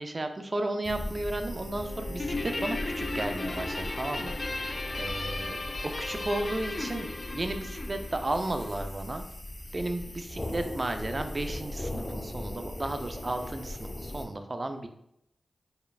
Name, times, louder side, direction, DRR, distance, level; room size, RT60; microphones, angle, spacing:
voice 1, 0.0-5.6 6.0-9.3 9.7-14.9, right 2 dB, 40° right, 7 dB, 0.5 m, -34 dB
sound 1, 0.8-14.3, left 1 dB, 25° left, 0.8 m, -39 dB
Bowed string instrument, 1.6-7.1, left 2 dB, 90° left, 1.0 m, -47 dB
Guitar, 2.2-8.9, left 2 dB, 50° left, 0.4 m, -36 dB
4.9 x 3.1 x 2.3 m, 0.76 s
cardioid pair, 40°, 0 cm